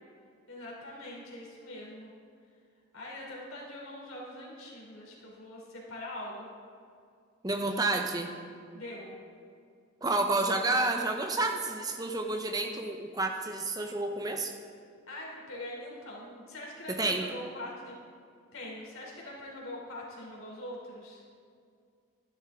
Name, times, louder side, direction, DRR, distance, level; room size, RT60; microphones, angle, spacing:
voice 1, 0.5-2.1 2.9-6.5 8.7-9.1 15.1-17.9 18.5-21.2, left 1 dB, 90° left, -3 dB, 3.3 m, -43 dB
voice 2, 7.4-8.3 10.0-14.5 16.9-17.3, right 2 dB, 20° right, 4 dB, 0.8 m, -30 dB
12.0 x 11.5 x 3.7 m, 2.3 s
head